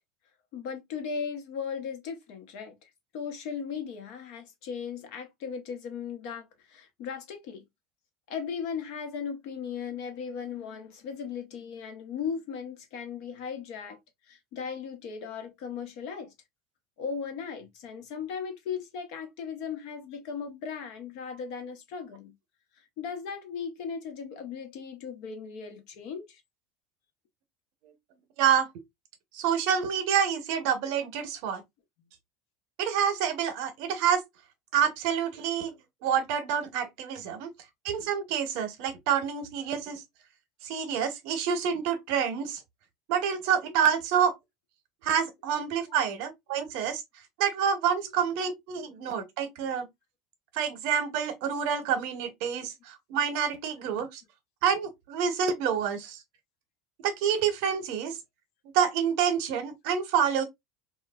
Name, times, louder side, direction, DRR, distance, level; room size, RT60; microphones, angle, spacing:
voice 1, 0.5-7.6 8.3-14.0 14.3-16.3 17.0-22.3 22.8-26.4 30.3-30.4 45.8-46.0 47.9-48.1 48.8-49.1 53.5-53.7, left 6 dB, 65° left, 0.9 m, -37 dB
voice 2, 28.4-28.7 29.3-31.6 32.8-34.2 34.7-35.7 36.0-37.5 37.8-40.0 40.6-42.6 43.1-44.3 45.0-47.0 47.4-49.9 50.5-54.2 54.6-56.2 57.0-58.2 58.7-60.4, right 8 dB, 65° right, 0.8 m, -27 dB
3.1 x 2.3 x 2.3 m
supercardioid pair, 140°, 0 cm